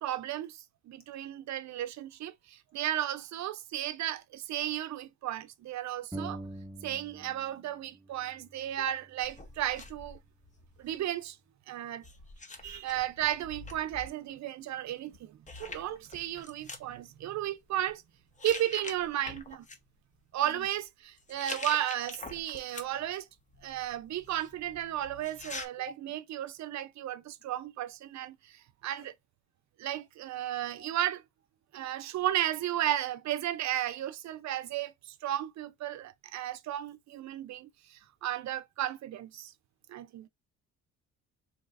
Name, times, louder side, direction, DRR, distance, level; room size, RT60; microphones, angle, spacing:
voice 1, 0.0-6.4 6.8-10.2 10.8-11.4 11.7-12.0 12.6-18.0 18.4-19.6 20.3-23.3 23.6-29.1 29.8-31.2 31.7-39.5 39.9-40.3, right 12 dB, 65° right, 0.5 m, -34 dB
sound 1, 6.1-7.6 7.9-9.7, right 1 dB, 10° right, 0.6 m, -45 dB
sound 2, 9.2-11.0 12.0-14.1 15.1-15.2 15.5-16.8 17.6-17.9 18.4-19.8 21.2-23.1 23.5-25.7, left 3 dB, 25° left, 0.8 m, -45 dB
voice 2, 30.3-30.9, left 5 dB, 65° left, 1.6 m, -50 dB
3.9 x 3.0 x 2.4 m
cardioid pair, 90°, 30 cm